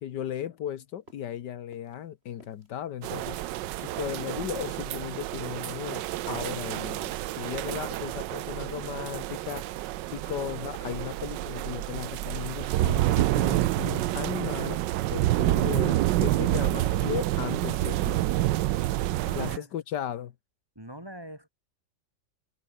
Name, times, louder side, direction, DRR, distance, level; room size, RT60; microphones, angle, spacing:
voice 1, 0.0-3.4 3.8-9.8 10.1-14.8 15.1-18.3 19.4-20.3, left 10 dB, 75° left, 1.6 m, -36 dB
sound 1, 0.9-18.9, right 1 dB, 35° right, 7.7 m, -57 dB
sound 2, 3.0-19.6, right 15 dB, 85° right, 1.3 m, -28 dB
voice 2, 19.2-19.7 20.7-21.5, equal, 15° right, 4.7 m, -43 dB
omnidirectional pair, 1.9 m